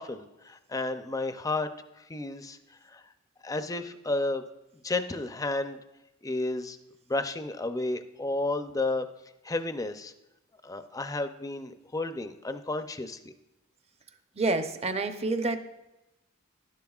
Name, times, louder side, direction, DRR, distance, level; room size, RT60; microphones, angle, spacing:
voice 1, 0.0-1.7 2.0-2.6 2.8-3.0 3.4-4.4 4.8-5.8 6.2-6.8 7.1-9.1 9.4-10.1 10.6-13.3, left 2 dB, 15° left, 9 dB, 0.5 m, -32 dB
voice 2, 14.4-15.7, right 3 dB, 30° right, 8 dB, 0.6 m, -28 dB
12.0 x 10.5 x 2.4 m, 0.94 s
head